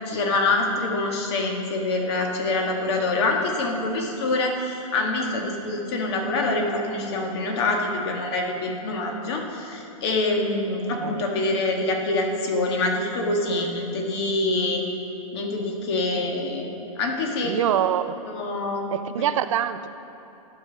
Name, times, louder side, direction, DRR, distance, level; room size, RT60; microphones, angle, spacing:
voice 1, 0.0-14.8 15.3-17.6 18.3-18.9, left 2 dB, 45° left, 1 dB, 1.5 m, -25 dB
voice 2, 17.4-18.2 18.9-19.9, right 10 dB, 60° right, 11 dB, 0.5 m, -24 dB
12.0 x 5.2 x 6.3 m, 2.9 s
hypercardioid pair, 145°, 18 cm